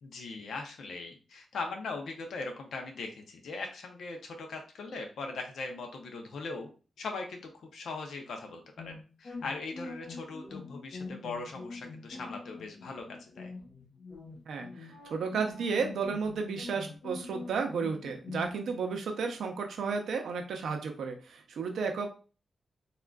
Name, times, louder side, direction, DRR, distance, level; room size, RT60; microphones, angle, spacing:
voice 1, 0.0-6.7 7.0-13.5, left 3 dB, 85° left, 3 dB, 0.6 m, -40 dB
sound 1, 8.8-18.5, left 3 dB, 55° left, 1.0 m, -44 dB
voice 2, 14.5-22.1, right 5 dB, 90° right, 4 dB, 0.5 m, -33 dB
3.6 x 2.4 x 2.2 m, 0.36 s
wide cardioid pair, 105°, 0 cm